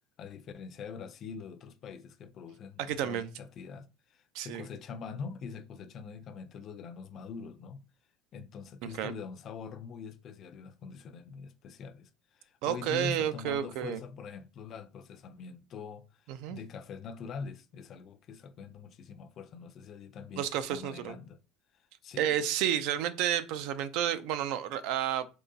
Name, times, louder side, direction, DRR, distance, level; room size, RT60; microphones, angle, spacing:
voice 1, 0.2-7.8 8.3-16.2 16.5-21.4 22.0-22.4, left 5 dB, 40° left, 0.4 m, -44 dB
voice 2, 2.9-3.3 4.3-4.7 9.0-9.1 12.6-14.0 16.3-16.6 20.4-21.2 22.2-25.3, right 10 dB, 65° right, 0.4 m, -31 dB
3.6 x 2.9 x 2.7 m
cardioid pair, 140°, 0 cm